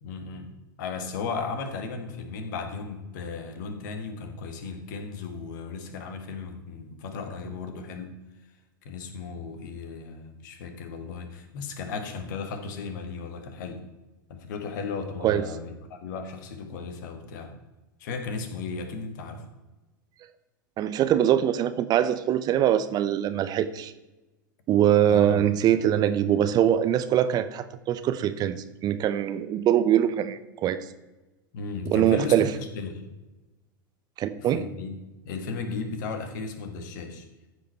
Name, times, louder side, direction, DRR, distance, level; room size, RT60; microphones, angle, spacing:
voice 1, 0.0-8.1 8.8-13.8 14.3-17.5 18.0-19.4 25.1-25.4 31.5-33.0 34.4-34.9 35.2-37.3, left 4 dB, 60° left, 7 dB, 1.6 m, -35 dB
voice 2, 20.8-23.9 24.7-28.6 28.8-30.8 31.9-32.5 34.2-34.7, right 10 dB, 35° right, 12 dB, 0.7 m, -23 dB
14.5 x 5.1 x 4.5 m, 1.1 s
figure-of-eight pair, 90°, 11 cm